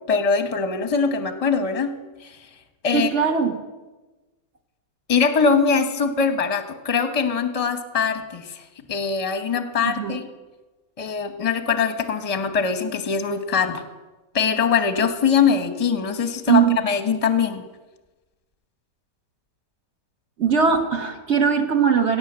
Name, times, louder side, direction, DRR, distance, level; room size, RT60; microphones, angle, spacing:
voice 1, 0.1-1.9 2.2-2.5 2.8-3.1 5.1-10.3 11.0-13.8 14.3-17.6, left 5 dB, 25° left, 8 dB, 0.9 m, -22 dB
voice 2, 2.9-3.6 9.8-10.1 16.5-16.8 20.4-22.2, right 6 dB, 45° right, 4 dB, 1.5 m, -20 dB
17.0 x 6.2 x 8.0 m, 1.2 s
omnidirectional pair, 1.8 m